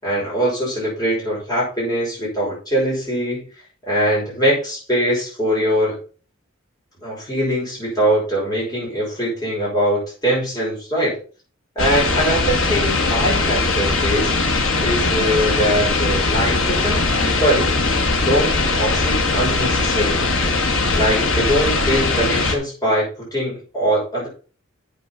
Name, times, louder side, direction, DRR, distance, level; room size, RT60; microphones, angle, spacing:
voice 1, 0.0-3.4 3.8-6.0 7.0-11.2 11.7-14.3 14.8-17.7 18.2-20.3 20.9-24.3, equal, 20° left, -6 dB, 6.2 m, -22 dB
sound 1, 11.8-22.6, left 3 dB, 75° left, 1.7 m, -20 dB
8.3 x 6.3 x 5.7 m, 0.38 s
head